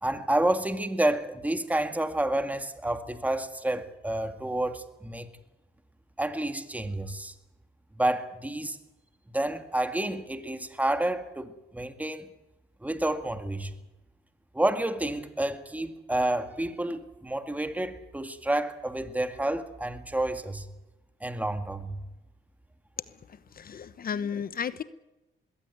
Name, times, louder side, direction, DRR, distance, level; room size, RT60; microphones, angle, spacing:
voice 1, 0.0-5.3 6.2-7.3 8.0-8.8 9.3-12.3 12.8-13.7 14.5-20.7 21.2-22.0, right 1 dB, 5° right, 9 dB, 2.0 m, -29 dB
voice 2, 23.5-24.8, left 7 dB, 50° left, 15 dB, 1.0 m, -33 dB
21.0 x 16.0 x 9.7 m, 1.0 s
cardioid pair, 90°, 20 cm